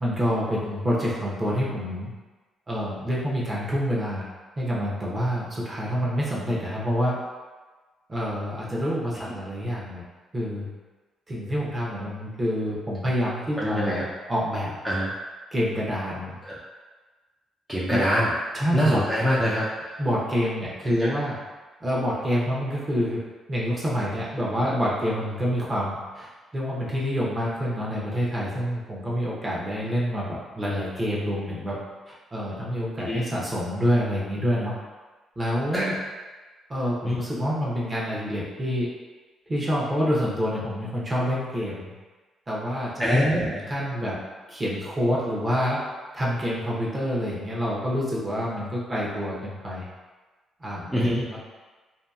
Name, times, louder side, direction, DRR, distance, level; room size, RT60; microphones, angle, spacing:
voice 1, 0.0-2.1 2.7-4.3 4.6-7.2 8.1-10.0 10.3-10.7 11.3-14.0 14.3-14.8 15.5-16.4 17.9-18.0 18.5-19.0 20.0-21.4 21.8-23.2 23.5-31.8 32.3-34.7 35.4-36.0 36.7-38.9 39.5-41.9 42.5-44.2 44.5-45.8 46.1-49.8 50.6-50.9 51.2-51.4, equal, 25° right, -6 dB, 0.8 m, -27 dB
voice 2, 13.6-14.0 14.8-15.1 16.4-16.5 17.7-18.3 18.7-19.7 20.9-21.2 33.0-33.2 35.7-35.9 37.0-37.2 43.0-43.6 50.9-51.2, equal, ahead, -8 dB, 0.5 m, -24 dB
2.8 x 2.4 x 2.3 m, 1.3 s
cardioid pair, 90°, 0 cm